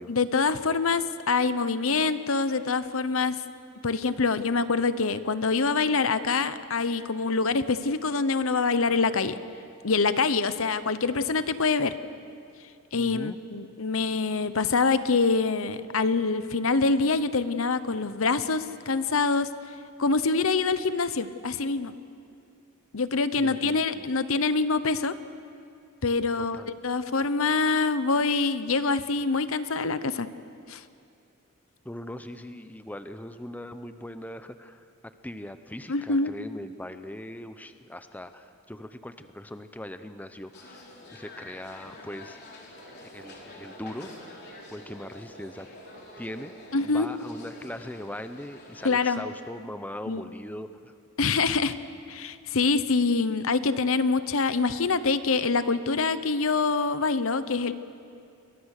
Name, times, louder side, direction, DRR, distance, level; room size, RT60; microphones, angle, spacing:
voice 1, 0.1-3.4 3.8-9.4 9.8-11.9 12.9-19.5 20.0-21.9 22.9-25.1 26.0-30.3 30.7-30.8 35.9-36.3 46.7-47.1 48.8-49.2 50.1-50.2 51.2-51.7 52.1-57.7, left 4 dB, 65° left, 13 dB, 0.9 m, -25 dB
voice 2, 12.9-13.4 23.4-24.1 26.4-26.7 31.8-34.9 35.2-40.8 41.1-42.4 43.1-44.1 44.7-45.7 46.2-46.5 46.8-50.9, left 1 dB, 5° left, 9 dB, 0.7 m, -40 dB
sound 1, 40.5-49.1, left 2 dB, 50° left, 3.8 m, -48 dB
sound 2, 42.7-47.7, right 2 dB, 65° right, 4.4 m, -51 dB
29.0 x 22.5 x 6.6 m, 2.5 s
head